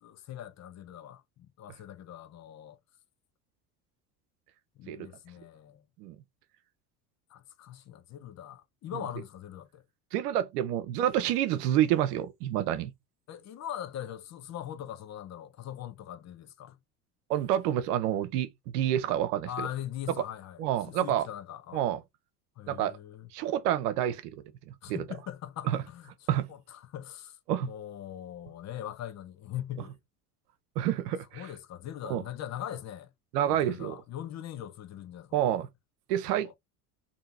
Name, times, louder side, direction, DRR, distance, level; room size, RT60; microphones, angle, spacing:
voice 1, 0.0-2.8 4.8-5.8 7.3-9.8 13.3-16.8 19.5-21.8 22.6-23.3 24.8-27.4 27.6-30.0 31.3-33.1 33.5-35.6 36.3-36.5, left 11 dB, 35° left, 0.7 m, -41 dB
voice 2, 10.1-12.9 17.3-19.7 20.2-20.3 20.6-21.3 21.7-22.0 22.7-23.0 23.3-24.3 24.7-25.0 25.7-25.8 26.3-26.5 27.5-27.7 30.8-31.5 32.0-32.2 33.3-34.0 35.3-35.7 36.1-36.6, right 11 dB, 75° right, 0.6 m, -28 dB
2.8 x 2.6 x 3.3 m
hypercardioid pair, 70°, 47 cm